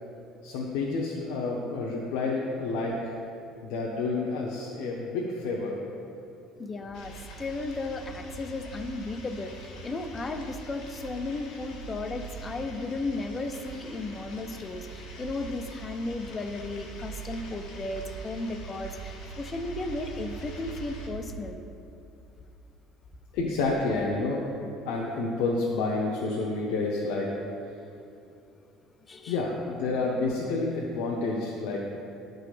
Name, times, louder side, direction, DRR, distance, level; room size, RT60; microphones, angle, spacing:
voice 1, 0.4-3.1 3.6-5.8 23.3-24.4 24.8-27.3 29.3-31.8, left 3 dB, 85° left, -3 dB, 0.8 m, -29 dB
voice 2, 6.6-21.6 29.1-29.4, left 2 dB, 20° left, 7 dB, 0.4 m, -35 dB
sound 1, 6.8-21.5, right 5 dB, 45° right, 1.7 m, -43 dB
sound 2, 6.9-21.1, left 3 dB, 65° left, 1.5 m, -49 dB
10.0 x 3.9 x 4.9 m, 2.7 s
cardioid pair, 170°, 0 cm